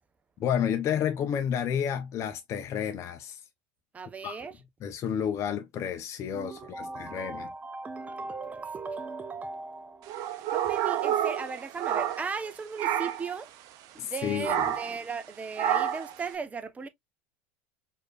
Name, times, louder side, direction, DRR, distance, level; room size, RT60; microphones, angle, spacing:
voice 1, 0.4-3.4 4.2-4.4 4.8-7.5 14.0-14.7, left 8 dB, 40° left, 0.6 m, -31 dB
voice 2, 3.9-4.6 6.3-10.1 10.5-13.5 14.0-16.9, right 4 dB, 20° right, 0.6 m, -37 dB
sound 1, 10.1-12.5 12.8-13.3 14.4-15.0 15.6-16.1, right 10 dB, 55° right, 0.7 m, -29 dB
4.9 x 2.7 x 2.2 m
supercardioid pair, 105°, 7 cm